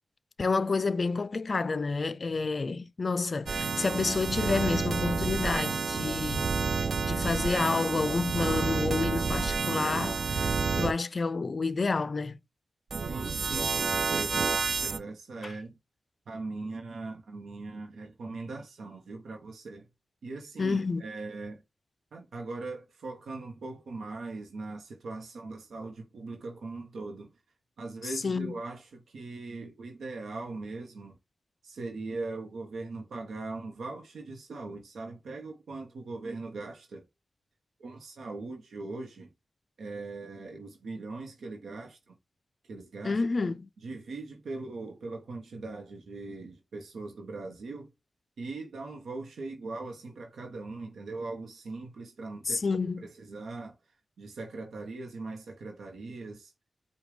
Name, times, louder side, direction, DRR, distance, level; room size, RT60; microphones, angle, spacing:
voice 1, 0.4-6.5 7.1-10.5 10.8-12.4 15.4-15.5 20.6-21.0 28.2-28.5 43.0-43.7 52.5-53.1, left 4 dB, 50° left, 0.4 m, -29 dB
sound 1, 3.5-10.9 12.9-15.0, right 4 dB, 65° right, 0.4 m, -29 dB
voice 2, 13.1-15.8 16.3-19.9 20.2-21.6 22.1-27.3 27.8-31.2 31.6-37.0 37.8-39.3 39.8-42.2 42.7-43.2 43.8-47.9 48.4-52.6 53.0-53.8 54.2-56.5, right 3 dB, 85° right, 0.8 m, -40 dB
4.9 x 2.3 x 4.8 m
cardioid pair, 65°, 0 cm